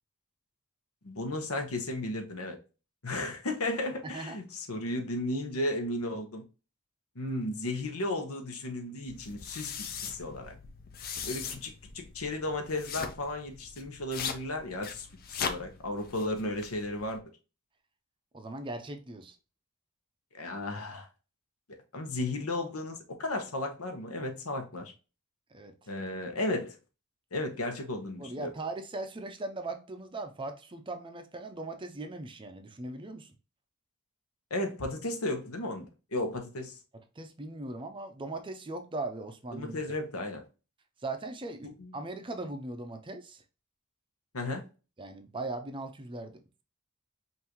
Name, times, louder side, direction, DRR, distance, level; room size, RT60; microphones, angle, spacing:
voice 1, 1.0-2.6 3.0-6.4 7.1-9.7 10.0-10.6 11.3-17.2 20.3-21.1 21.9-24.9 25.9-26.8 27.3-28.5 34.5-36.8 39.5-40.4 41.6-41.9 44.3-44.6, left 2 dB, 75° left, 1.0 m, -34 dB
sound 1, 9.1-17.2, left 6 dB, 45° left, 0.5 m, -40 dB
voice 2, 18.3-19.4 25.5-25.9 28.2-33.3 37.2-39.8 41.0-43.4 45.0-46.6, right 2 dB, 20° right, 0.5 m, -39 dB
5.6 x 2.6 x 3.0 m
head